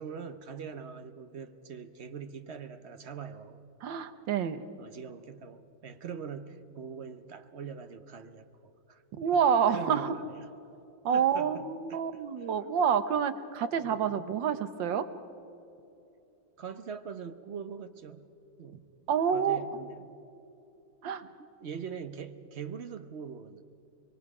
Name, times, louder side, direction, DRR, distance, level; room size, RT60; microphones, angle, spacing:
voice 1, 0.0-3.6 4.8-9.0 9.7-10.5 11.1-11.6 11.9-12.0 13.8-14.0 16.6-18.3 18.6-18.8 19.3-20.2 21.0-21.3 21.6-23.6, right 6 dB, 55° right, 9 dB, 0.8 m, -42 dB
voice 2, 3.8-4.6 9.2-10.1 11.0-15.1 19.1-19.6 21.0-21.2, right 7 dB, 75° right, 11 dB, 1.6 m, -28 dB
25.0 x 23.0 x 4.9 m, 2.9 s
omnidirectional pair, 2.1 m